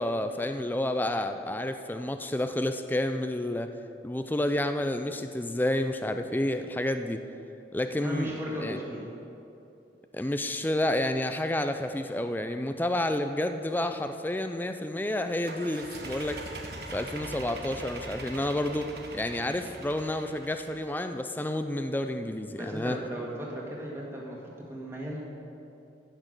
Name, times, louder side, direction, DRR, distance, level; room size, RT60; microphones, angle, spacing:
voice 1, 0.0-3.7 4.0-7.3 7.7-8.3 8.6-8.8 10.1-16.4 16.9-23.0, left 1 dB, 10° left, 8 dB, 0.4 m, -30 dB
voice 2, 8.0-9.0 22.6-25.2, equal, 15° right, -4 dB, 2.1 m, -36 dB
sound 1, 15.4-21.0, right 2 dB, 60° right, 1.3 m, -42 dB
15.5 x 6.1 x 6.6 m, 2.7 s
head